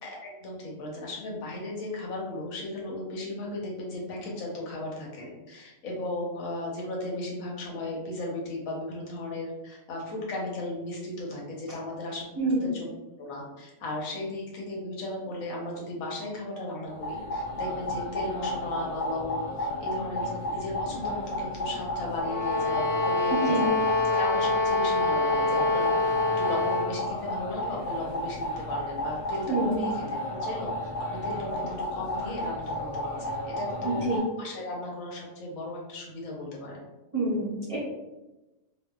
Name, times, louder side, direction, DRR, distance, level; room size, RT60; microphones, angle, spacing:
voice 1, 0.0-12.9 13.2-23.7 24.1-30.7 31.1-36.8, left 2 dB, 90° left, -3 dB, 1.1 m, -36 dB
voice 2, 12.4-12.7 23.3-23.7 29.5-29.8 33.8-34.2 37.1-37.8, right 2 dB, 35° right, -9 dB, 0.6 m, -27 dB
sound 1, 16.9-34.2, left 1 dB, 60° left, 1.0 m, -33 dB
sound 2, 22.2-27.0, left 2 dB, 40° left, 0.4 m, -26 dB
2.7 x 2.1 x 2.2 m, 1.0 s
omnidirectional pair, 1.4 m